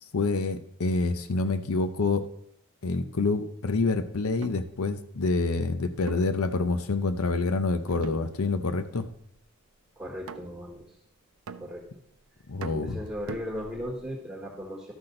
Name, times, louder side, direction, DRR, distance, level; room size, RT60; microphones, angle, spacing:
voice 1, 0.1-2.2 2.8-9.1 12.5-13.0, left 3 dB, 80° left, 11 dB, 0.7 m, -27 dB
sound 1, 4.4-4.7 6.1-7.1 7.9-8.7 9.0-9.4 10.3-10.8 11.5-12.1 12.6-14.1, right 5 dB, 75° right, 0.5 m, -42 dB
voice 2, 10.0-10.9 11.6-11.9 12.7-14.9, equal, 5° right, -4 dB, 1.4 m, -37 dB
12.5 x 5.9 x 3.9 m, 0.72 s
head